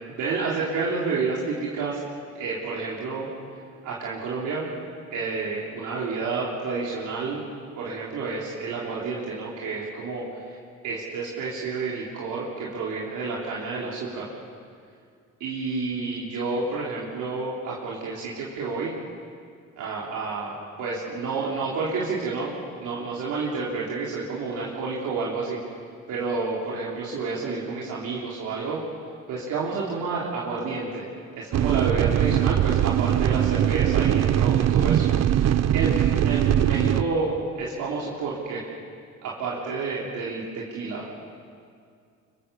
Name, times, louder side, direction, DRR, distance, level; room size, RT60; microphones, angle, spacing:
voice 1, 0.1-2.0 2.4-3.3 3.8-4.7 5.1-7.4 7.8-10.6 10.8-14.3 15.4-18.9 19.8-22.5 22.8-25.6 26.1-28.8 29.3-31.1 31.3-35.1 35.7-38.6 39.2-41.1, right 4 dB, 85° right, -6 dB, 3.7 m, -30 dB
sound 1, 31.5-37.0, right 11 dB, 60° right, 0.7 m, -21 dB
25.0 x 23.5 x 6.9 m, 2.3 s
cardioid pair, 90°, 30 cm